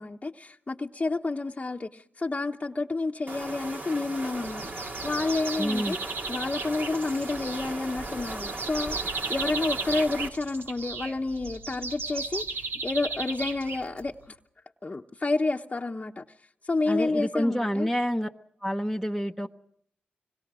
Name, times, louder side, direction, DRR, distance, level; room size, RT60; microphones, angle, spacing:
voice 1, 0.0-6.0 6.3-14.4 14.8-17.9, left 3 dB, 35° left, 0.9 m, -30 dB
sound 1, 3.3-10.3, right 2 dB, 55° right, 2.2 m, -37 dB
sound 2, 4.4-14.3, right 4 dB, 75° right, 1.5 m, -36 dB
voice 2, 5.6-6.0 16.9-18.3 18.6-19.5, equal, ahead, 1.0 m, -28 dB
25.5 x 22.0 x 6.1 m
cardioid pair, 50°, 4 cm